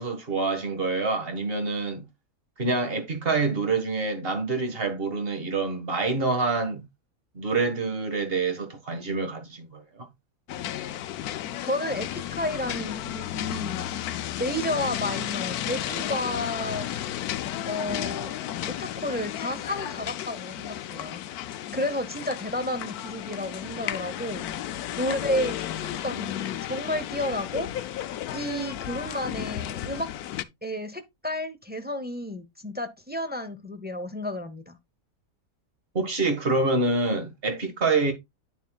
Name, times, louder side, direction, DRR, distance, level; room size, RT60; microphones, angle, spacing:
voice 1, 0.0-2.0 2.6-6.8 7.4-10.1 35.9-38.1, right 3 dB, 40° right, 1.8 m, -26 dB
sound 1, 10.5-30.4, left 12 dB, 85° left, 1.1 m, -33 dB
voice 2, 11.6-13.9 14.4-16.9 17.6-18.3 18.7-21.2 21.7-28.0 28.3-30.1 30.6-34.8, left 1 dB, 10° right, 0.6 m, -32 dB
10.0 x 7.0 x 2.3 m
omnidirectional pair, 1.6 m